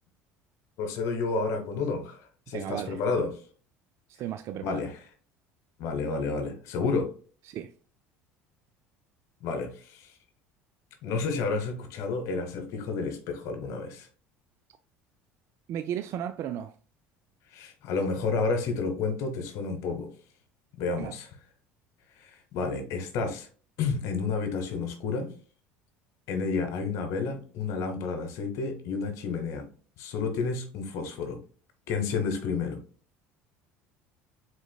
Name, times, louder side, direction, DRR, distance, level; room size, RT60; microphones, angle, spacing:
voice 1, 0.8-3.3 4.6-5.0 5.8-7.1 9.4-10.1 11.0-14.1 17.5-20.1 20.8-21.3 22.2-23.5 23.8-25.3 26.3-29.7 30.0-31.4 31.9-32.8, left 4 dB, 65° left, 1.0 m, -30 dB
voice 2, 2.5-3.0 4.1-4.9 7.5-7.7 15.7-16.7 21.0-21.1, right 10 dB, 55° right, 0.3 m, -35 dB
4.9 x 4.0 x 2.2 m
supercardioid pair, 90°, 6 cm